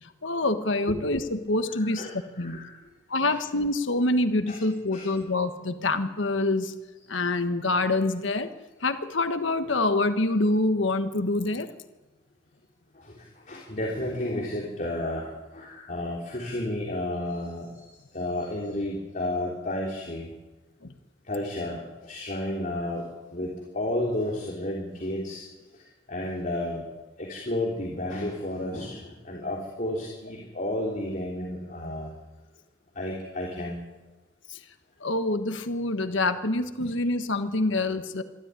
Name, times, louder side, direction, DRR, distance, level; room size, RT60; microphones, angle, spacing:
voice 1, 0.0-2.0 2.4-2.6 3.1-6.7 7.1-8.5 8.8-11.7 20.8-20.9 34.5-34.6 35.0-38.2, left 2 dB, 75° left, 9 dB, 1.4 m, -26 dB
voice 2, 1.8-2.7 3.3-3.4 4.5-4.6 4.9-5.1 13.5-15.3 15.5-17.7 18.1-20.3 21.3-21.8 22.1-23.0 23.3-25.4 26.1-26.9 27.2-32.1 33.0-33.8, left 1 dB, 40° left, -3 dB, 3.5 m, -31 dB
25.0 x 13.0 x 9.7 m, 1.2 s
head